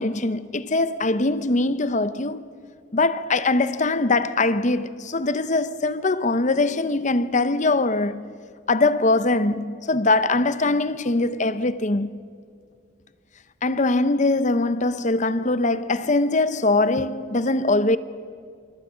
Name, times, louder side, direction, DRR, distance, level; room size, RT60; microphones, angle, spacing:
voice 1, 0.0-2.5 2.9-8.3 8.7-12.2 13.6-18.0, left 2 dB, 35° left, 0.8 m, -22 dB
27.5 x 24.0 x 8.7 m
head